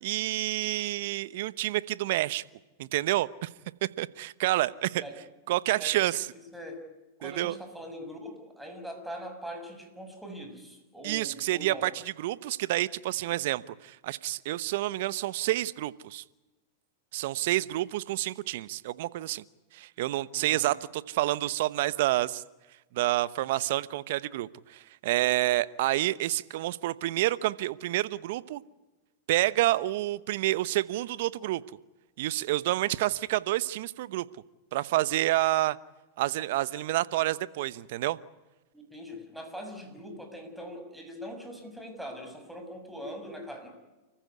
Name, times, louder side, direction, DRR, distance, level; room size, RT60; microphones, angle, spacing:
voice 1, 0.0-2.4 2.8-3.5 4.0-5.0 5.5-6.3 7.2-7.6 11.0-11.9 12.2-16.2 17.1-19.4 19.7-22.4 22.9-28.6 29.3-31.6 32.2-34.3 34.7-35.8 36.2-38.2, right 16 dB, 65° right, 17 dB, 1.0 m, -28 dB
voice 2, 5.8-6.9 7.2-11.9 20.4-20.7 38.7-43.7, equal, 5° right, 4 dB, 6.7 m, -42 dB
29.5 x 15.0 x 9.7 m, 1.1 s
hypercardioid pair, 115°, 0 cm